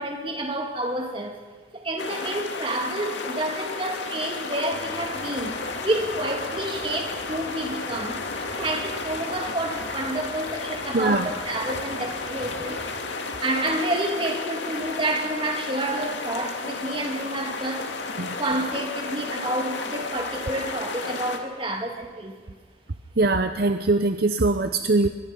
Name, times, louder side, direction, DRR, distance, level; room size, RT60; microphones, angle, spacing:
voice 1, 0.0-1.4 1.7-5.6 5.8-12.8 13.4-17.9 18.4-22.6, right 1 dB, 30° right, 2 dB, 2.6 m, -29 dB
sound 1, 2.0-21.4, left 3 dB, 75° left, 2.2 m, -33 dB
sound 2, 4.7-13.0, equal, 25° left, 4.8 m, -41 dB
voice 2, 10.9-11.3 18.2-18.4 23.2-25.1, right 2 dB, 55° right, 8 dB, 0.8 m, -22 dB
24.0 x 23.0 x 5.5 m, 1.5 s
head